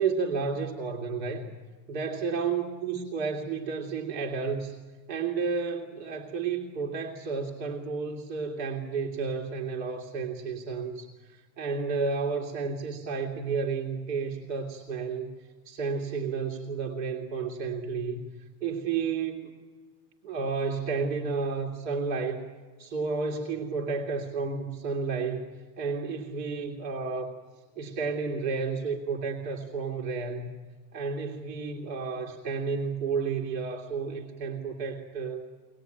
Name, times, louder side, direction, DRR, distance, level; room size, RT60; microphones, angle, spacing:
voice 1, 0.0-1.5 1.9-4.7 5.1-15.3 15.6-18.3 18.6-19.5 20.2-22.4 22.8-25.5 25.8-27.3 27.8-30.6 30.9-35.5, right 5 dB, 80° right, 1 dB, 2.5 m, -31 dB
23.5 x 20.0 x 9.1 m, 1.4 s
supercardioid pair, 160°, 50 cm